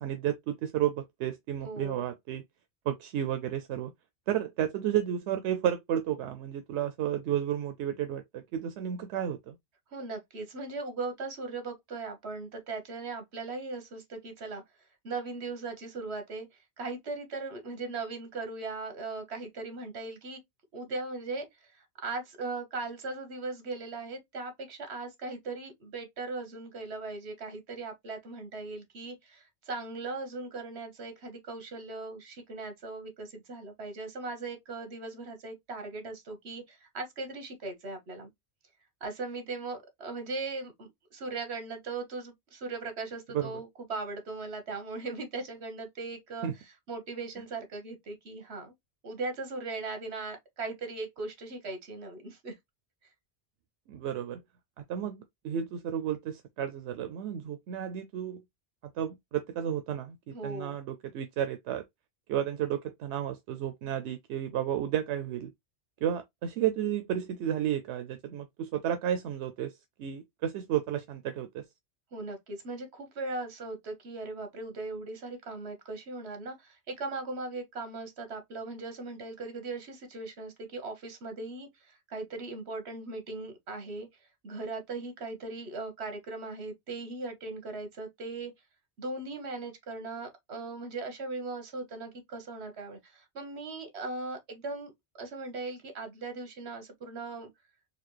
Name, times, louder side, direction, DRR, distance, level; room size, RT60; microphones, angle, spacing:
voice 1, 0.0-2.4 2.9-3.9 4.3-9.6 43.3-43.5 46.4-46.5 53.9-54.4 54.8-55.2 55.4-58.4 58.8-61.8 62.3-65.5 66.0-71.6, right 10 dB, 90° right, 0.9 m, -32 dB
voice 2, 1.6-2.1 9.9-14.6 15.0-16.5 16.8-20.4 20.7-38.3 39.0-46.5 46.9-48.7 49.0-52.5 60.3-60.8 72.1-84.1 84.4-88.5 89.0-94.9 95.2-97.5, right 3 dB, 75° right, 1.4 m, -39 dB
4.1 x 2.4 x 3.1 m
omnidirectional pair, 1.1 m